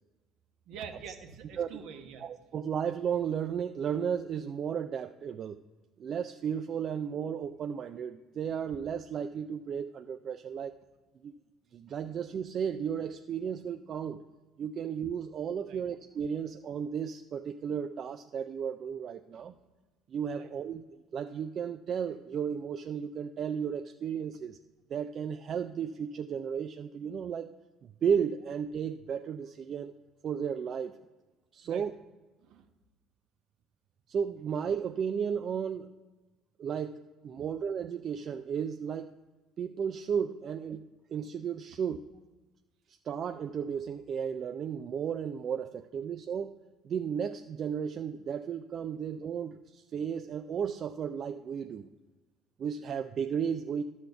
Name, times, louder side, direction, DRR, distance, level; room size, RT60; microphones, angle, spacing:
voice 1, 0.7-2.2 15.7-15.8 19.3-19.4 20.3-20.5 31.6-31.9 32.4-32.7, right 7 dB, 70° right, 5 dB, 1.0 m, -45 dB
voice 2, 2.2-5.6 6.0-10.7 11.2-11.3 11.7-14.2 14.6-19.5 20.1-20.8 21.1-24.6 24.9-27.6 27.8-29.9 30.2-30.9 31.5-31.9 34.1-35.9 36.6-39.1 39.6-42.0 42.9-46.6 46.8-51.9 52.6-53.8, right 7 dB, 50° right, 8 dB, 0.4 m, -34 dB
11.5 x 4.2 x 6.7 m, 1.2 s
supercardioid pair, 80°, 0 cm